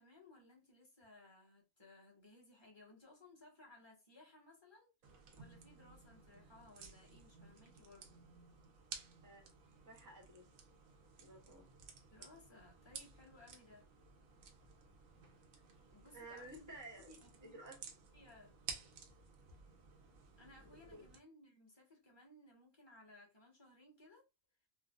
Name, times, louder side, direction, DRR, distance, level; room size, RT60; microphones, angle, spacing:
voice 1, 0.0-4.9 5.3-8.2 12.1-13.9 15.9-16.8 17.1-17.6 18.1-18.6 20.4-24.2, left 2 dB, 20° left, 1.2 m, -61 dB
sound 1, 5.0-21.2, right 5 dB, 85° right, 1.1 m, -55 dB
voice 2, 9.8-10.5 11.2-11.7 16.1-17.1 17.4-17.8 20.6-21.1, right 2 dB, 20° right, 0.7 m, -54 dB
4.4 x 2.0 x 2.4 m
omnidirectional pair, 1.4 m